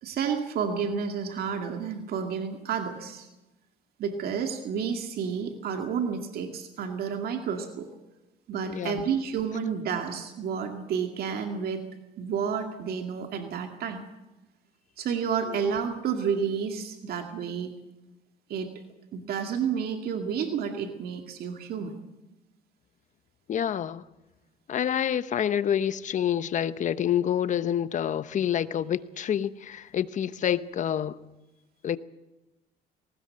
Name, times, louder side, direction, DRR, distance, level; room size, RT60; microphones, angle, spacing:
voice 1, 0.0-3.3 4.0-7.9 8.5-11.8 12.2-14.0 15.0-17.7 18.5-18.7 19.1-22.0, right 6 dB, 65° right, 2.2 m, -30 dB
voice 2, 8.7-9.0 15.5-15.6 23.5-24.0 24.7-31.2 31.8-32.0, left 9 dB, 45° left, 1.0 m, -27 dB
20.0 x 18.5 x 7.9 m
cardioid pair, 110°, 17 cm